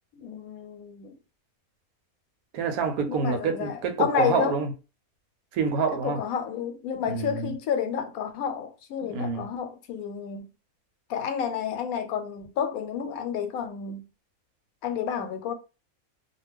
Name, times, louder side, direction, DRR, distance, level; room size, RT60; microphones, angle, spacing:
voice 1, 0.1-1.2 3.1-4.6 6.0-10.5 11.1-14.0 14.8-15.5, left 7 dB, 85° left, 1.1 m, -30 dB
voice 2, 2.5-4.7 5.5-6.2 7.0-7.5 9.0-9.5, right 5 dB, 90° right, 1.1 m, -27 dB
2.4 x 2.3 x 3.3 m
omnidirectional pair, 1.5 m